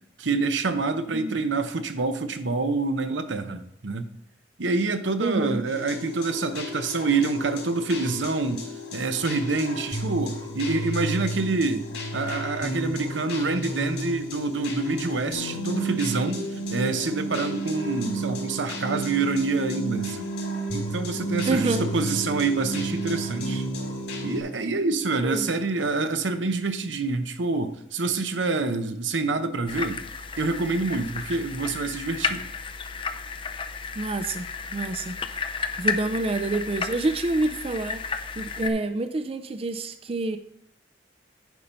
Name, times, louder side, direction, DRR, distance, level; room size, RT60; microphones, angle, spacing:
voice 1, 0.2-4.1 4.6-16.4 16.7-20.3 20.7-23.6 24.2-30.0 30.4-32.4, right 3 dB, 85° right, 8 dB, 0.9 m, -27 dB
voice 2, 5.2-5.6 21.5-21.8 25.2-25.5 34.0-34.5 34.7-40.4, right 2 dB, 30° right, 9 dB, 0.4 m, -28 dB
sound 1, 5.7-24.4, right 1 dB, 65° left, 2.6 m, -32 dB
sound 2, 29.7-38.7, left 5 dB, 30° left, 0.4 m, -33 dB
9.5 x 5.4 x 4.3 m, 0.73 s
head